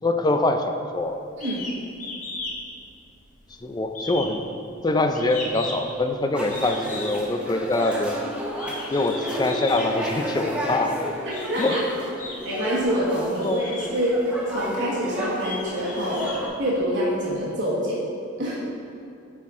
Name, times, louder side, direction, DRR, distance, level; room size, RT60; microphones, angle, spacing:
voice 1, 0.0-1.2 3.6-4.4 4.8-8.2 8.7-11.0 11.6-11.8 13.4-13.7, left 2 dB, 20° left, 6 dB, 0.3 m, -24 dB
sound 1, 1.4-1.7 2.0-2.6 2.9-3.5 3.9-6.0 6.5-7.2 7.7-7.9 8.5-9.9 10.7-10.8 11.3-11.8 12.2-12.9 13.4-13.9 14.5-14.6 15.1-17.0, left 3 dB, 40° left, 1.0 m, -36 dB
sound 2, 6.3-16.5, equal, 5° right, 0.8 m, -32 dB
voice 2, 11.2-11.8 12.4-14.2 14.5-16.3 16.6-18.1 18.4-18.6, equal, 60° right, -6 dB, 1.2 m, -26 dB
9.0 x 4.2 x 3.6 m, 2.5 s
head